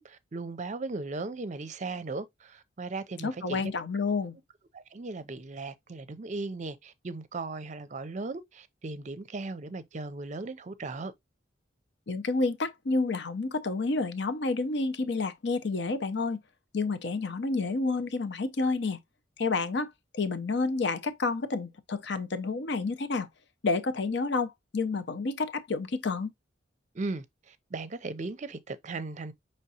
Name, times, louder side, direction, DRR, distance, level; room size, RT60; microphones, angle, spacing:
voice 1, 0.0-3.7 4.7-11.1 26.9-29.3, right 3 dB, 40° right, 0.5 m, -37 dB
voice 2, 3.2-4.4 12.1-16.4 16.7-19.0 19.4-23.3 23.6-26.3, left 3 dB, 65° left, 0.7 m, -29 dB
5.9 x 3.1 x 2.8 m
head